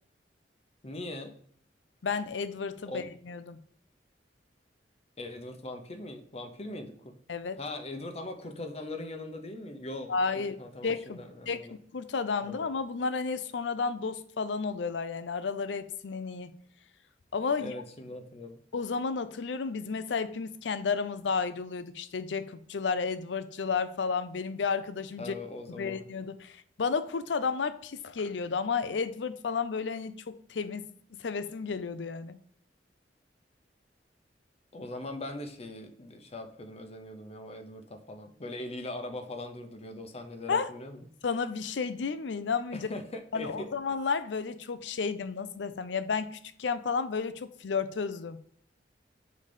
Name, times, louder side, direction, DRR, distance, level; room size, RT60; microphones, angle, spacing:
voice 1, 0.8-1.3 2.9-3.1 5.2-7.2 7.6-11.8 12.4-12.6 17.6-18.6 25.2-26.1 34.7-41.1 42.7-43.7, left 2 dB, 35° left, 0.8 m, -41 dB
voice 2, 2.0-3.6 7.3-7.6 10.1-10.6 10.8-16.5 17.3-17.7 18.7-25.3 25.8-30.9 31.2-32.4 40.5-40.7 41.2-42.9 43.3-48.5, left 5 dB, 75° left, 0.5 m, -32 dB
5.2 x 4.0 x 5.2 m
head